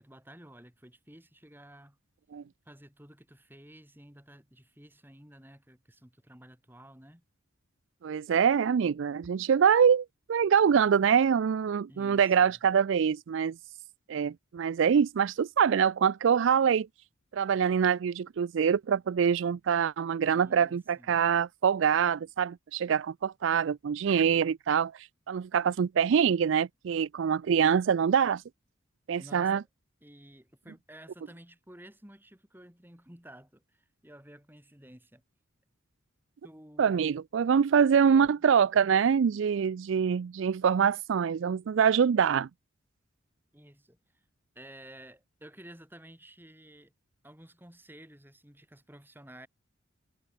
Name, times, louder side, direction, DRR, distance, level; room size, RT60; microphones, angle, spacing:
voice 1, 0.0-2.0 2.7-7.2 11.9-12.6 20.3-21.2 29.2-29.7 30.0-35.2 36.4-37.0 38.1-38.4 43.5-44.2 44.5-46.9 47.2-49.5, right 1 dB, 10° right, 3.9 m, -52 dB
voice 2, 8.0-13.6 14.1-16.9 17.3-28.4 29.1-29.6 36.8-42.5, right 7 dB, 65° right, 0.4 m, -25 dB
head